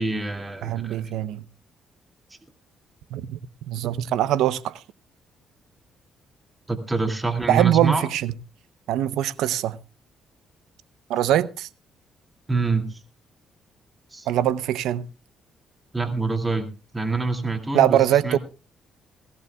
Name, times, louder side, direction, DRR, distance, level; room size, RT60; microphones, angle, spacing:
voice 1, 0.0-1.0 6.7-8.1 12.5-13.0 14.1-14.3 15.9-16.7 16.9-18.4, right 3 dB, 15° right, 2.4 m, -26 dB
voice 2, 0.6-1.4 3.1-3.4 3.7-4.8 7.5-8.3 8.9-9.8 11.1-11.7 14.3-15.1 17.7-18.4, right 12 dB, 85° right, 0.7 m, -22 dB
20.0 x 17.0 x 2.3 m
cardioid pair, 90°, 0 cm